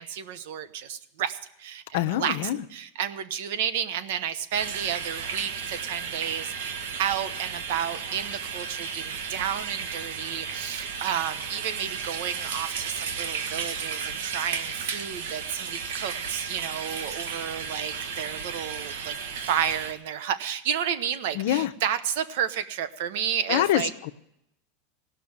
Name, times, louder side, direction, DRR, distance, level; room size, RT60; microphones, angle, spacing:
voice 1, 0.0-2.4 2.7-19.2 19.5-23.9, right 9 dB, 70° right, 12 dB, 1.0 m, -31 dB
voice 2, 1.9-2.6 21.3-21.7 23.5-24.1, left 13 dB, 70° left, 9 dB, 0.8 m, -25 dB
sound 1, 4.5-19.9, right 6 dB, 90° right, 1.5 m, -34 dB
17.5 x 6.0 x 9.6 m, 0.79 s
supercardioid pair, 145°, 0 cm